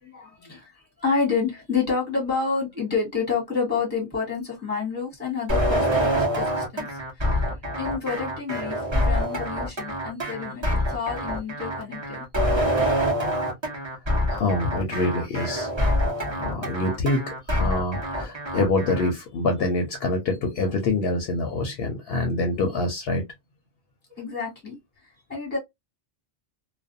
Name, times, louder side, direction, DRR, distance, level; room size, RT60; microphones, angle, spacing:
voice 1, 0.0-12.3 24.2-25.6, left 5 dB, 10° left, 1.0 m, -29 dB
sound 1, 5.5-19.1, equal, 25° right, 0.9 m, -25 dB
voice 2, 14.3-15.7 16.3-23.2, left 2 dB, 70° left, 0.8 m, -26 dB
2.4 x 2.2 x 2.5 m
omnidirectional pair, 1.1 m